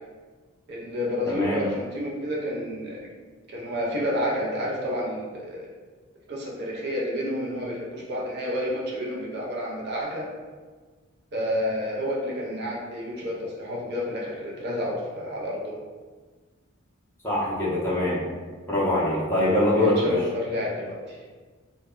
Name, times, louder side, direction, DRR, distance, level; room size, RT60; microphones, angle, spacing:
voice 1, 0.7-3.1 3.5-5.7 6.3-10.3 11.3-15.8 19.7-21.2, equal, 50° right, -4 dB, 0.5 m, -30 dB
voice 2, 1.3-1.6 17.2-18.2 18.7-20.2, left 1 dB, 10° left, -8 dB, 0.6 m, -23 dB
2.1 x 2.1 x 3.6 m, 1.4 s
head